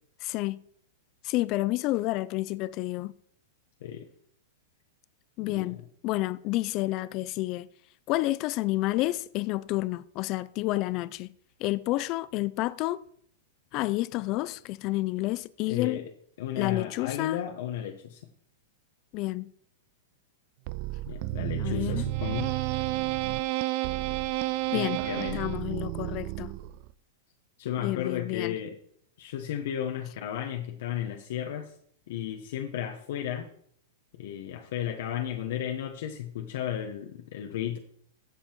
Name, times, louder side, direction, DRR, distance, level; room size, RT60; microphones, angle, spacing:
voice 1, 0.2-0.6 1.2-3.1 5.4-5.8 6.0-7.7 8.1-11.3 11.6-13.0 13.7-16.0 16.5-17.4 19.1-19.5 21.6-22.1 24.7-25.0 25.3-26.5 27.8-28.5, left 18 dB, 35° left, 0.3 m, -29 dB
voice 2, 15.7-16.1 16.4-18.2 21.1-22.5 24.7-25.5 27.6-28.8 29.2-31.7 32.1-33.5 34.2-37.8, left 10 dB, 60° left, 1.1 m, -34 dB
sound 1, 20.7-26.9, right 18 dB, 45° right, 0.5 m, -31 dB
15.0 x 5.4 x 4.6 m
supercardioid pair, 155°, 0 cm